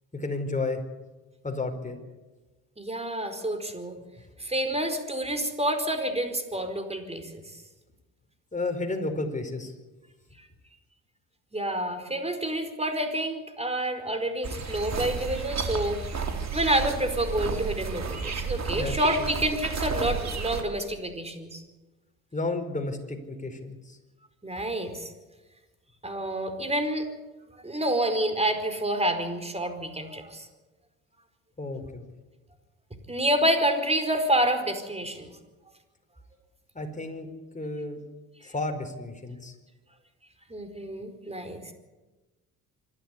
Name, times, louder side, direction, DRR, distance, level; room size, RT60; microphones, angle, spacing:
voice 1, 0.1-0.8 1.4-2.0 8.5-9.7 18.7-19.3 22.3-24.0 31.6-32.0 36.7-37.3 37.5-38.0 38.4-39.5, left 2 dB, 20° left, 5 dB, 5.0 m, -32 dB
voice 2, 2.8-4.0 4.4-7.4 11.5-16.0 16.5-21.6 24.4-25.1 26.0-27.1 27.6-30.5 33.1-35.3 40.5-41.7, right 1 dB, 15° right, 8 dB, 4.8 m, -28 dB
sound 1, 14.4-20.6, right 5 dB, 40° right, 3.7 m, -32 dB
25.5 x 12.5 x 9.8 m, 1.2 s
hypercardioid pair, 60°, 42 cm